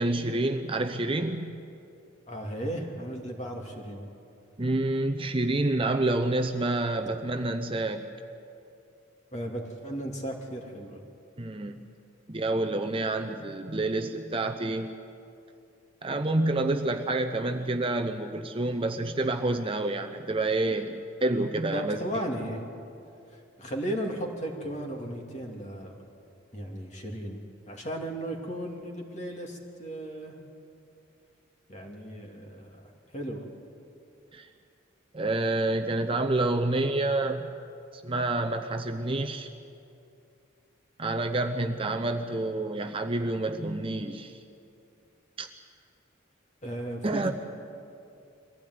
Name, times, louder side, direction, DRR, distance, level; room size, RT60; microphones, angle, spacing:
voice 1, 0.0-1.5 4.6-8.1 11.4-11.8 12.3-14.9 16.0-22.0 34.3-34.5 35.1-37.5 38.0-39.5 41.0-44.4 45.4-45.5 47.0-47.3, right 2 dB, 25° right, 5 dB, 0.8 m, -28 dB
voice 2, 2.3-4.0 9.3-11.0 21.7-22.8 23.6-26.0 26.5-30.3 31.7-33.5 46.6-47.3, right 1 dB, 35° left, 2 dB, 2.6 m, -35 dB
23.0 x 15.5 x 9.5 m, 2.6 s
head